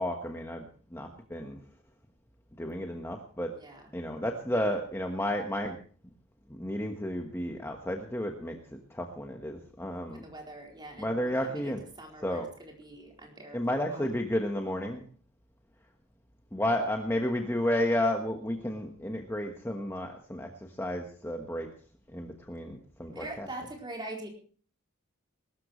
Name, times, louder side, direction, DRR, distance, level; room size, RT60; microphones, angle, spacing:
voice 1, 0.0-1.6 2.6-3.5 3.9-5.8 6.6-10.2 11.0-11.8 12.2-12.5 13.5-15.0 16.5-21.7 22.1-23.5, left 1 dB, 10° left, 3 dB, 1.2 m, -32 dB
voice 2, 3.6-3.9 10.1-14.1 23.1-24.3, right 2 dB, 20° right, 0 dB, 4.2 m, -44 dB
21.5 x 13.0 x 3.1 m, 0.43 s
head